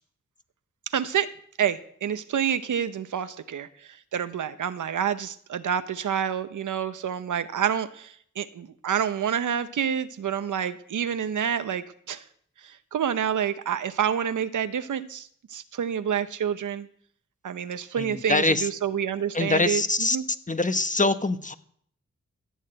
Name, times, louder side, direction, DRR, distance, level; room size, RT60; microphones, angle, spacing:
voice 1, 0.9-1.3 1.6-3.7 4.1-12.2 12.6-16.9 17.4-20.2, right 8 dB, 85° right, 12 dB, 0.8 m, -28 dB
voice 2, 18.0-18.7 19.3-20.2 20.5-21.6, left 2 dB, 25° left, 10 dB, 1.1 m, -24 dB
14.0 x 6.7 x 8.9 m, 0.62 s
cardioid pair, 50°, 30 cm